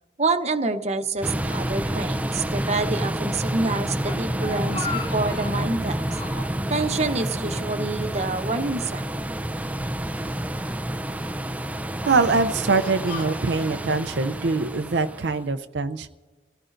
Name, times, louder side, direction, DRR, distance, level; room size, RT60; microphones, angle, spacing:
voice 1, 0.2-6.0 6.7-9.1, right 3 dB, 40° right, 6 dB, 0.9 m, -27 dB
sound 1, 1.2-15.4, right 1 dB, 10° right, 0.5 m, -29 dB
Speech, 4.0-5.7 6.1-6.6 7.0-8.1 8.4-8.5 9.4-10.4 11.1-11.5 12.1-13.8, left 3 dB, 30° left, 2.1 m, -38 dB
voice 2, 12.1-16.1, right 4 dB, 75° right, 7 dB, 0.6 m, -23 dB
29.0 x 16.5 x 2.6 m, 1.3 s
head